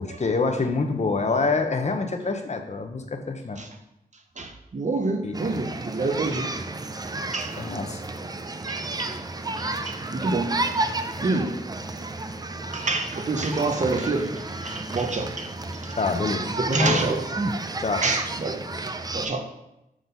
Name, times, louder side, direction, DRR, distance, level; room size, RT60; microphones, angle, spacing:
voice 1, 0.0-3.6 5.2-5.4 7.5-8.0 16.0-16.5 16.8-17.0 17.8-18.0, left 4 dB, 45° left, 6 dB, 0.7 m, -26 dB
voice 2, 4.4-6.6 7.3-7.6 8.7-9.2 9.6-10.7 11.2-11.6 12.7-16.0 16.6-17.2 18.0-18.9 19.1-19.5, right 3 dB, 50° right, 5 dB, 0.8 m, -27 dB
sound 1, 5.3-19.3, right 2 dB, 25° right, 0.4 m, -31 dB
6.2 x 3.9 x 5.3 m, 0.87 s
wide cardioid pair, 110°, 16 cm